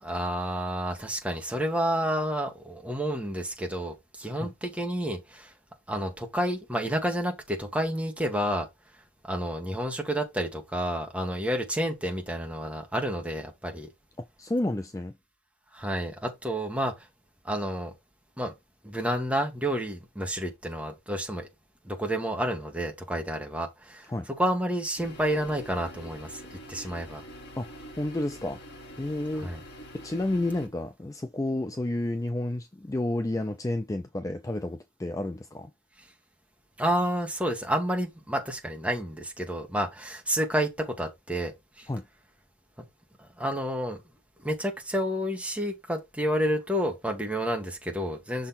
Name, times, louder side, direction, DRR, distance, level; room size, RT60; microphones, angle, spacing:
voice 1, 0.0-5.5 5.9-8.7 9.2-13.9 15.7-16.9 17.4-17.9 18.4-18.5 18.8-21.5 21.8-26.4 26.7-27.2 29.4-29.6 36.8-41.9 43.4-44.0 44.4-48.5, equal, 5° right, 1.5 m, -30 dB
voice 2, 14.4-15.1 24.1-24.3 27.6-27.7 28.0-28.6 29.0-29.5 29.9-35.7 41.9-42.0, left 1 dB, 15° left, 0.4 m, -30 dB
sound 1, 25.0-30.7, equal, 55° left, 1.8 m, -45 dB
6.4 x 3.9 x 4.2 m
head